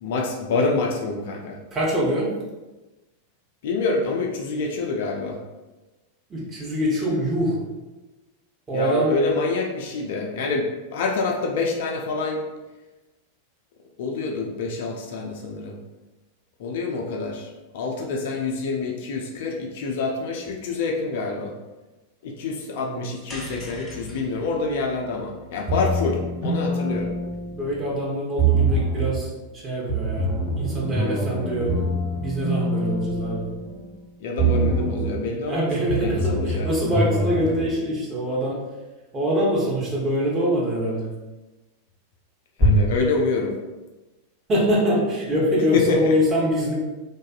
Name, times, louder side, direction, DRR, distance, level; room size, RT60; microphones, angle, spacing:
voice 1, 0.0-1.6 3.6-5.4 8.7-12.4 14.0-15.8 16.6-21.5 22.2-27.1 34.2-35.7 36.0-36.7 42.6-43.5 45.7-46.1, left 3 dB, 55° left, 1 dB, 0.3 m, -26 dB
voice 2, 1.7-2.3 6.3-7.6 8.7-9.2 22.7-23.1 25.7-25.9 27.5-31.7 32.2-33.5 35.5-38.6 39.1-41.1 44.5-46.7, equal, 20° right, -5 dB, 0.8 m, -24 dB
sound 1, 23.3-27.7, left 2 dB, 15° left, 0.6 m, -42 dB
sound 2, 25.7-27.9 28.4-29.2 29.9-34.0 34.4-35.2 35.9-37.7, right 2 dB, 55° right, 1.2 m, -25 dB
2.6 x 2.3 x 2.3 m, 1.1 s
figure-of-eight pair, 90°, 0 cm